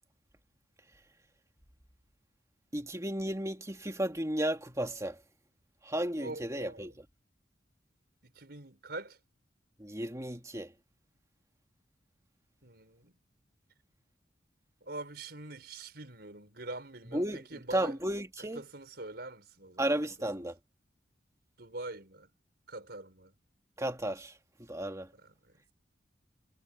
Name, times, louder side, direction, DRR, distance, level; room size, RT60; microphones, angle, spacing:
voice 1, 2.7-5.2 5.8-7.0 9.8-10.7 17.1-17.4 17.7-18.6 19.8-20.6 23.8-25.1, right 1 dB, 15° right, 2.4 m, -34 dB
voice 2, 6.2-7.0 8.2-9.2 12.6-13.2 14.8-17.9 18.5-19.9 21.6-22.3 22.7-23.3 25.1-25.6, right 2 dB, 60° right, 5.8 m, -44 dB
head